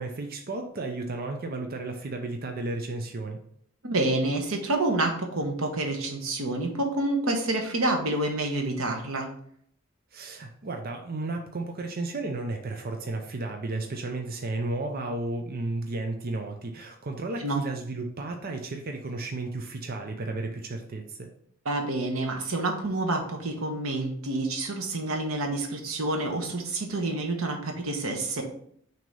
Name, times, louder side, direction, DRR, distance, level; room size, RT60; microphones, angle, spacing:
voice 1, 0.0-3.4 10.1-21.3, right 2 dB, 45° right, 4 dB, 0.6 m, -33 dB
voice 2, 3.8-9.3 17.4-17.6 21.6-28.4, right 2 dB, 90° right, 3 dB, 1.2 m, -28 dB
6.1 x 2.9 x 5.3 m, 0.64 s
head